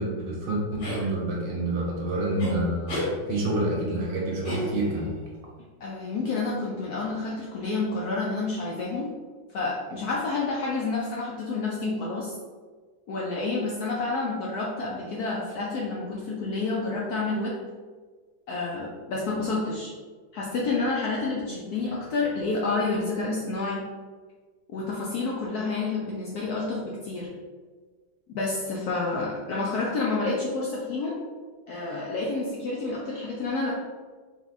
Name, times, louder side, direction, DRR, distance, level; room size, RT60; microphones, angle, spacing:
voice 1, 0.0-5.1, right 2 dB, 70° right, -3 dB, 1.6 m, -28 dB
sound 1, 0.8-1.1 2.4-2.5 2.9-3.1 4.4-5.1, left 2 dB, 85° left, 2.1 m, -31 dB
voice 2, 5.8-9.1 9.5-12.3 13.1-17.5 18.5-19.9 20.3-23.8 24.7-27.3 28.3-31.1 31.7-33.7, left 3 dB, 70° left, -4 dB, 0.9 m, -29 dB
4.4 x 2.3 x 4.0 m, 1.5 s
omnidirectional pair, 2.2 m